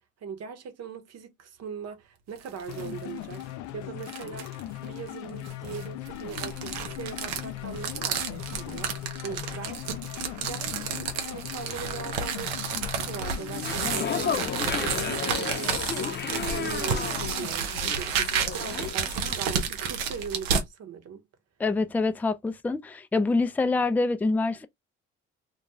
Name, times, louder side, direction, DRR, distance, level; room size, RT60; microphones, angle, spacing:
voice 1, 0.2-4.5 4.8-9.9 10.5-21.3, right 7 dB, 55° right, 0.9 m, -40 dB
sound 1, 2.4-2.9 3.3-3.4 4.0-4.6 5.4-20.7, right 6 dB, 85° right, 0.7 m, -31 dB
sound 2, 2.7-17.5, left 14 dB, 70° left, 0.4 m, -39 dB
sound 3, 13.5-19.7 20.0-20.3, left 6 dB, 35° left, 0.7 m, -33 dB
voice 2, 21.6-24.7, left 3 dB, 5° left, 0.4 m, -26 dB
2.4 x 2.2 x 3.0 m
hypercardioid pair, 55°, 30 cm